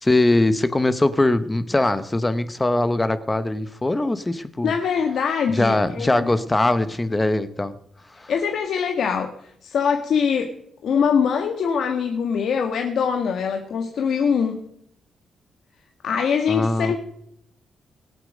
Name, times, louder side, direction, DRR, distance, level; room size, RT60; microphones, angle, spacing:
voice 1, 0.0-4.7 5.5-7.7 8.2-8.3 16.5-17.0, left 2 dB, 15° left, 0.8 m, -21 dB
voice 2, 4.6-6.3 8.3-10.5 10.8-14.6 16.0-17.0, left 6 dB, 65° left, 1.6 m, -23 dB
24.5 x 8.2 x 5.2 m
wide cardioid pair, 160°, 0 cm